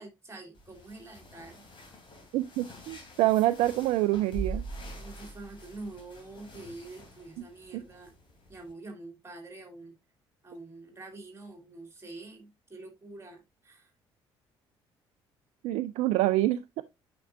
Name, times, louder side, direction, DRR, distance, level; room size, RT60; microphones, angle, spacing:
voice 1, 0.0-1.6 5.0-8.1 8.5-10.0 10.4-13.9, right 2 dB, 20° right, 2.8 m, -46 dB
sound 1, 0.5-8.7, right 3 dB, 35° left, 3.0 m, -44 dB
voice 2, 2.3-4.6 7.7-7.8 15.6-16.8, right 15 dB, 55° right, 0.4 m, -26 dB
9.0 x 5.2 x 2.5 m
figure-of-eight pair, 50°, 14 cm